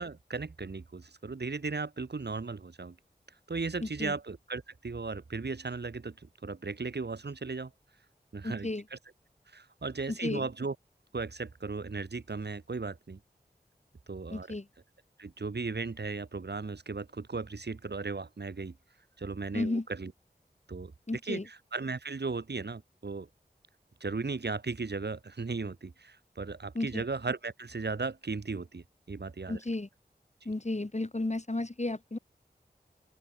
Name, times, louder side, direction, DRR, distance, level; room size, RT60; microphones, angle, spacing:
voice 1, 0.0-3.0 3.5-7.7 8.3-9.0 9.5-10.7 11.1-13.2 14.1-14.5 15.2-18.8 19.2-20.1 20.7-20.9 21.3-21.4 21.7-23.3 24.0-29.6, right 4 dB, 80° right, 2.0 m, -36 dB
voice 2, 3.8-4.2 8.4-8.8 10.1-10.5 14.3-14.7 19.5-19.9 21.1-21.5 26.7-27.0 29.5-29.9 30.4-32.2, left 2 dB, 40° left, 7.9 m, -33 dB
open air
wide cardioid pair, 65°, 17 cm